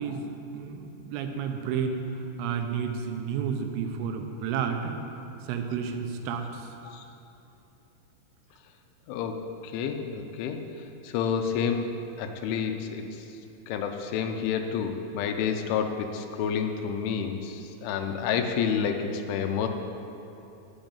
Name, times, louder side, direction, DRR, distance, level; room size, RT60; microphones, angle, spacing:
voice 1, 0.0-2.1 2.4-4.9 5.5-6.6, right 6 dB, 90° right, 5 dB, 3.5 m, -31 dB
voice 2, 9.1-10.6 11.0-11.9 12.2-13.0 13.7-19.7, left 7 dB, 80° left, 6 dB, 3.1 m, -29 dB
9.0 x 8.0 x 8.8 m, 2.9 s
omnidirectional pair, 5.6 m